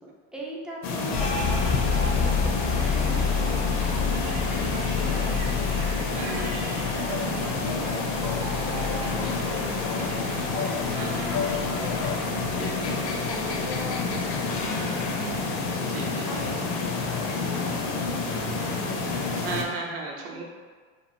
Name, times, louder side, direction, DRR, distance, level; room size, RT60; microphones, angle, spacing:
voice 1, 0.0-3.7 4.0-4.4 4.7-5.5 6.8-10.2 10.8-15.4 16.2-16.7 16.9-19.1, right 1 dB, ahead, -3 dB, 0.3 m, -42 dB
sound 1, 0.8-19.6, left 4 dB, 55° left, 0.5 m, -28 dB
sound 2, 1.1-10.5 10.8-12.0 12.4-12.8 13.3-13.9, left 5 dB, 90° left, 0.8 m, -29 dB
Yell, 2.6-12.3, right 3 dB, 80° right, 0.8 m, -40 dB
voice 2, 6.0-6.5 11.0-11.3 15.8-16.5 19.4-20.4, right 4 dB, 45° right, 0 dB, 0.6 m, -35 dB
3.1 x 2.4 x 2.5 m, 1.5 s
supercardioid pair, 110°, 33 cm